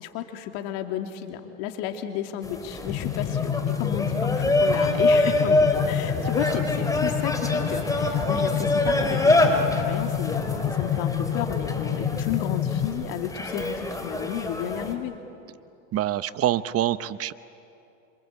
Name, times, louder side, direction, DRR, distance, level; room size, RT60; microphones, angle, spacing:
voice 1, 0.0-15.1, left 10 dB, 65° left, 5 dB, 2.9 m, -33 dB
sound 1, 2.4-14.9, left 2 dB, 10° left, 3.9 m, -26 dB
sound 2, 2.9-12.9, left 9 dB, 40° left, 2.5 m, -28 dB
voice 2, 6.3-6.7 15.9-17.3, right 12 dB, 40° right, 15 dB, 0.8 m, -26 dB
26.5 x 26.0 x 8.5 m, 2.7 s
hypercardioid pair, 95°, 38 cm